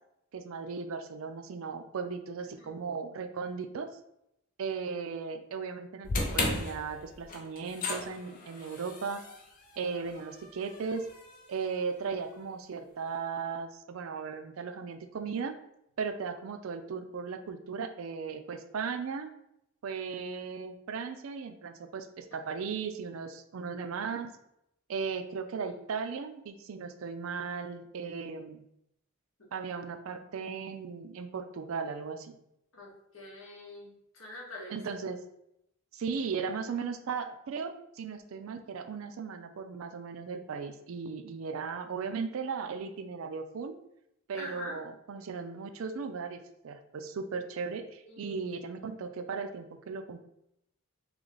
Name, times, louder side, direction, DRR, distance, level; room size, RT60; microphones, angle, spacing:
voice 1, 0.3-3.9 4.6-9.2 9.8-11.1 11.5-15.5 16.0-19.3 19.8-24.4 24.9-28.7 29.5-32.4 34.7-35.2 35.9-43.8 44.3-50.2, right 5 dB, 70° right, 8 dB, 0.4 m, -37 dB
sound 1, 6.0-12.3, left 2 dB, 40° left, 0.6 m, -37 dB
voice 2, 32.7-34.8 44.3-44.8 48.0-48.3, left 1 dB, 65° left, -3 dB, 1.1 m, -45 dB
3.2 x 3.0 x 3.8 m, 0.81 s
head